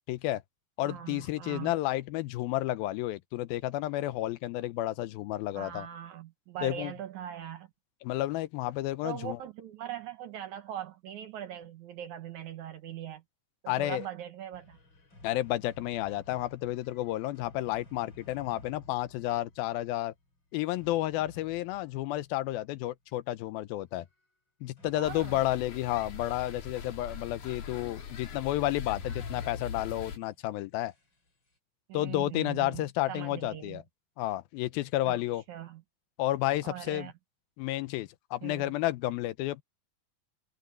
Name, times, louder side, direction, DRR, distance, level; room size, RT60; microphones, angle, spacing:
voice 1, 0.1-0.4 0.8-5.9 6.6-6.9 8.0-9.4 13.7-14.1 15.2-20.1 20.5-24.1 24.6-30.9 31.9-33.8 34.2-35.4 36.2-37.1 37.6-39.6, left 15 dB, 85° left, 2.5 m, -31 dB
voice 2, 0.8-1.7 5.5-7.7 9.0-13.2 13.6-14.8 24.9-25.4 31.9-33.8 35.0-35.2 35.5-35.8 36.6-37.1 38.4-38.7, right 11 dB, 70° right, 2.0 m, -41 dB
sound 1, 14.5-22.9 24.8-31.6, left 2 dB, 30° left, 5.9 m, -55 dB
sound 2, 25.0-30.2, left 6 dB, 55° left, 3.6 m, -41 dB
omnidirectional pair, 4.3 m